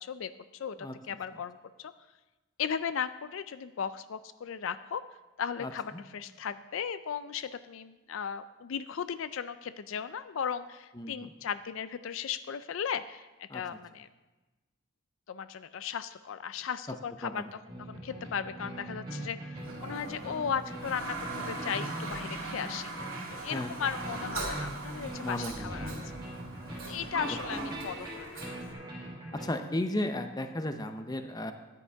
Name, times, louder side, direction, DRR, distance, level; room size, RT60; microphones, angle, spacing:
voice 1, 0.0-0.8 1.1-1.9 2.6-5.0 5.4-14.1 15.3-22.9 23.3-26.2 26.8-28.3, left 7 dB, 65° left, 13 dB, 0.4 m, -36 dB
voice 2, 5.6-6.0 11.0-11.3 13.5-13.6 17.2-17.4 23.5-23.7 25.2-25.7 29.3-31.5, left 1 dB, 20° left, 8 dB, 0.6 m, -34 dB
sound 1, 17.7-29.5, right 1 dB, 20° right, 3.2 m, -42 dB
Toilet flush, 19.6-28.7, right 2 dB, 75° right, 2.4 m, -40 dB
14.0 x 9.9 x 3.5 m, 1.1 s
head